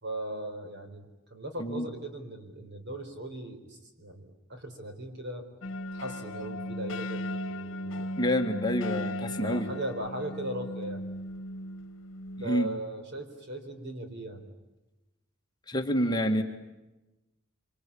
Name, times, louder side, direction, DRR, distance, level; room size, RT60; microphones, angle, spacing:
voice 1, 0.0-1.1 1.3-5.4 5.9-7.2 7.5-8.1 9.1-11.1 12.4-14.4, right 1 dB, 55° right, 6 dB, 4.4 m, -38 dB
sound 1, 5.6-12.5, left 1 dB, 65° left, 1.4 m, -36 dB
voice 2, 8.2-9.7 12.4-12.7 15.7-16.4, equal, 20° left, 4 dB, 1.9 m, -28 dB
26.0 x 26.0 x 8.6 m, 1.0 s
head